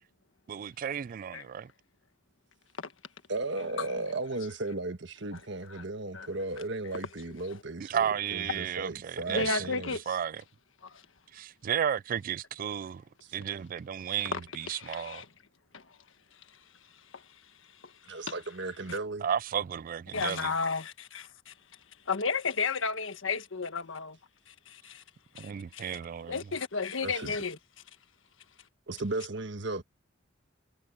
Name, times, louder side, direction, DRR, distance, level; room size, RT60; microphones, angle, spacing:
voice 1, 0.5-1.7 7.8-9.6 10.1-10.4 11.3-13.0 13.3-15.2 19.2-20.5 25.4-26.4, right 8 dB, 45° right, 0.3 m, -33 dB
voice 2, 3.3-10.0 13.2-13.3 18.1-19.3 27.0-27.3 28.9-29.8, right 2 dB, 65° right, 1.5 m, -35 dB
voice 3, 9.3-10.0 10.8-11.0 14.3-15.3 15.7-15.8 17.1-17.2 17.8-17.9 18.3-18.4 18.9-19.0 20.1-21.5 22.1-24.2 24.5-25.0 25.3-26.0 26.3-27.6, left 4 dB, 90° left, 1.5 m, -33 dB
head